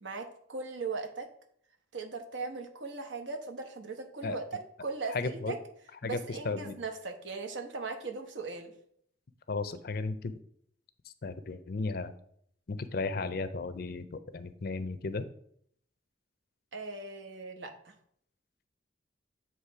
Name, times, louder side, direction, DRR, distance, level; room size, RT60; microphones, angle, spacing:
voice 1, 0.0-1.3 1.9-5.6 6.0-8.7 16.7-17.9, right 4 dB, 75° right, 5 dB, 1.0 m, -39 dB
voice 2, 5.1-5.6 6.0-6.2 6.4-6.8 9.5-10.3 11.2-12.1 12.7-15.3, left 3 dB, 50° left, 12 dB, 0.5 m, -34 dB
8.2 x 3.1 x 4.6 m, 0.66 s
head